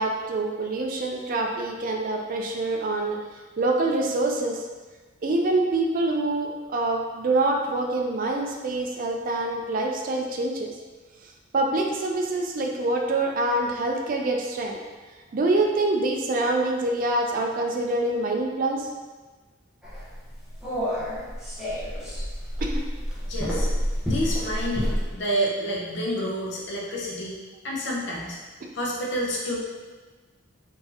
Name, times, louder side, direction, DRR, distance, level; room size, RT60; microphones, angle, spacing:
voice 1, 0.0-3.2 3.6-4.6 5.2-10.7 11.5-14.8 15.3-18.9 22.6-22.8 28.6-28.7, right 2 dB, 45° right, 2 dB, 0.4 m, -25 dB
sound 1, 19.8-25.1, equal, ahead, 0.9 m, -28 dB
voice 2, 23.3-23.7 24.0-27.4 27.6-28.4 28.7-29.6, equal, 60° left, -3 dB, 0.7 m, -29 dB
3.7 x 2.6 x 2.8 m, 1.3 s
head